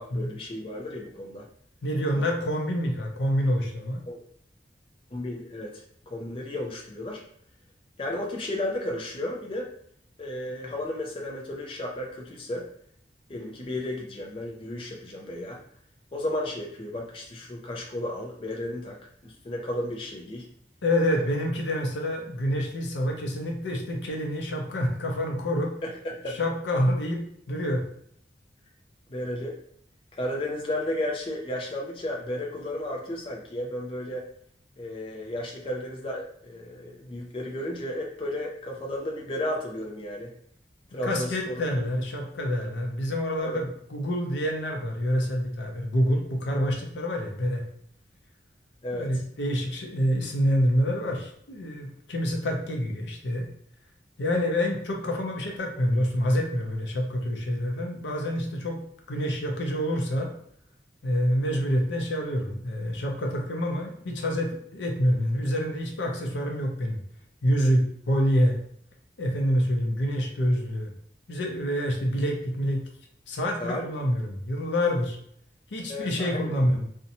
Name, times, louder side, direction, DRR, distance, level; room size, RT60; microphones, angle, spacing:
voice 1, 0.0-1.5 4.1-4.2 5.1-7.2 8.0-9.7 10.2-12.7 13.3-15.6 16.1-19.0 19.2-20.5 21.1-21.3 25.8-26.4 29.1-29.5 30.1-34.3 34.8-40.3 40.9-41.5 43.4-43.6 48.8-49.1 73.6-73.8 75.9-76.6, left 1 dB, 30° left, -1 dB, 0.4 m, -33 dB
voice 2, 1.8-4.0 20.8-25.7 26.3-27.2 27.5-27.8 41.0-47.6 48.9-53.5 54.2-58.8 59.1-60.3 61.0-67.0 67.4-68.6 69.2-70.9 71.3-72.8 73.3-75.2 75.7-76.8, equal, 90° left, 1 dB, 0.6 m, -27 dB
2.6 x 2.1 x 2.8 m, 0.66 s
head